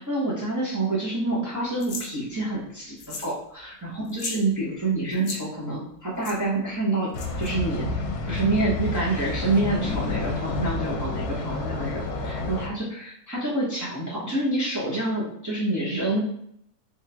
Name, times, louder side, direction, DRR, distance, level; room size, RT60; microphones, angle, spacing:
voice 1, 0.0-7.1 7.4-7.9 8.3-16.2, right 2 dB, 15° right, -7 dB, 0.8 m, -27 dB
sound 1, 1.8-2.1 3.0-3.4 3.6-3.7 4.0-4.4 5.1-5.4 6.2-6.4 7.1-7.5, left 4 dB, 60° left, 0.9 m, -35 dB
sound 2, 7.1-12.7, left 2 dB, 80° left, 1.2 m, -29 dB
3.6 x 2.6 x 3.3 m, 0.70 s
omnidirectional pair, 1.7 m